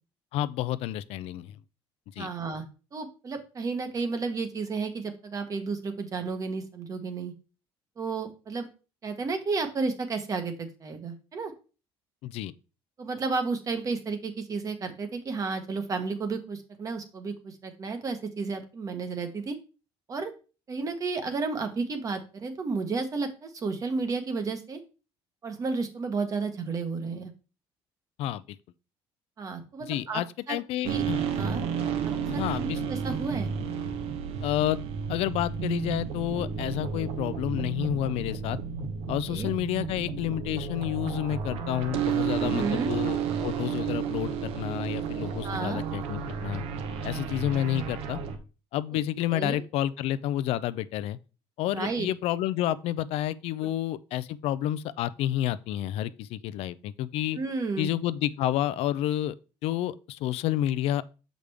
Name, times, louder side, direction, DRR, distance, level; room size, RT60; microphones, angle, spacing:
voice 1, 0.3-1.5 2.2-2.3 12.2-12.5 28.2-28.4 29.9-31.2 32.3-32.8 34.4-34.8 35.1-38.6 39.1-46.6 47.0-48.2 48.7-51.2 51.6-57.4 57.8-59.3 59.6-61.0, left 13 dB, 70° left, 0.4 m, -30 dB
voice 2, 2.2-2.6 2.9-7.3 8.0-8.7 9.0-11.5 13.0-19.5 20.1-20.3 20.7-24.8 25.4-27.3 29.4-30.2 30.5-30.6 30.9-31.0 31.3-31.6 32.3-33.5 39.3-39.5 42.4-43.0 45.4-45.8 48.9-49.0 49.3-49.6 51.7-52.1 57.3-57.9, right 4 dB, 35° right, 1.1 m, -32 dB
sound 1, 30.8-48.4, right 7 dB, 70° right, 0.9 m, -32 dB
6.6 x 5.0 x 3.4 m
cardioid pair, 140°, 10 cm